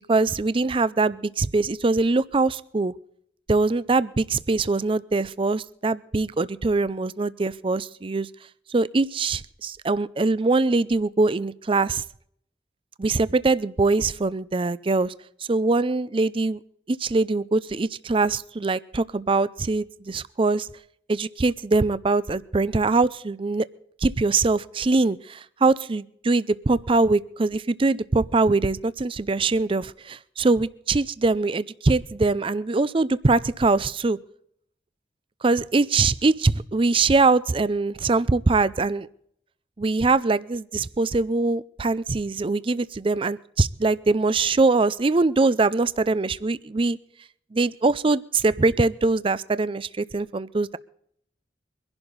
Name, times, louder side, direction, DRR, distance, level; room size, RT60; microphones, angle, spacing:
voice 1, 0.1-2.9 3.5-8.3 8.7-12.0 13.0-15.1 15.5-16.6 16.9-20.7 21.1-23.7 24.0-34.2 35.4-39.1 39.8-47.0 47.5-50.8, right 3 dB, 30° right, 17 dB, 0.5 m, -22 dB
23.0 x 11.5 x 4.0 m, 0.67 s
head